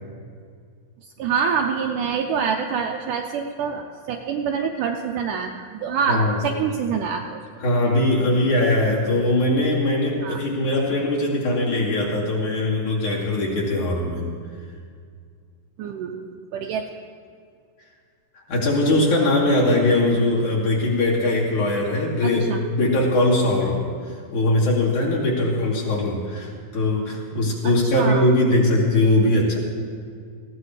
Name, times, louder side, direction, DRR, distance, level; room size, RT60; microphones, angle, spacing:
voice 1, 1.2-7.4 10.2-10.5 15.8-16.8 22.2-22.6 27.9-28.3, right 6 dB, 85° right, 3 dB, 1.9 m, -26 dB
voice 2, 7.6-14.3 18.5-23.8 24.3-29.6, left 1 dB, 55° left, -5 dB, 3.6 m, -21 dB
19.5 x 15.5 x 3.3 m, 2.1 s
omnidirectional pair, 4.3 m